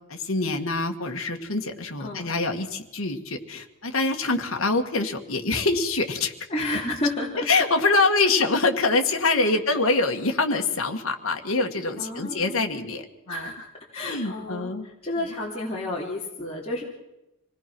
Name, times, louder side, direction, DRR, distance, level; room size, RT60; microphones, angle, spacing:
voice 1, 0.1-6.3 7.5-13.5 14.0-14.9, left 3 dB, 65° left, 4 dB, 1.8 m, -25 dB
voice 2, 2.0-2.3 6.5-7.5 12.0-12.7 13.3-13.7 13.9-16.8, left 1 dB, 30° left, -5 dB, 3.0 m, -31 dB
26.0 x 18.5 x 6.1 m, 0.94 s
head